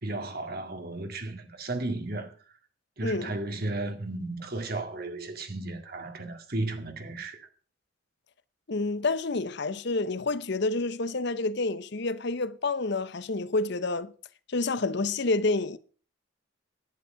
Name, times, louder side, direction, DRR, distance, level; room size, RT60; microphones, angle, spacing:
voice 1, 0.0-2.3 3.0-7.5, right 2 dB, 50° right, 2.0 m, -34 dB
voice 2, 3.0-3.4 8.7-14.1 14.5-15.8, left 3 dB, 55° left, 0.7 m, -28 dB
11.0 x 9.9 x 5.7 m
head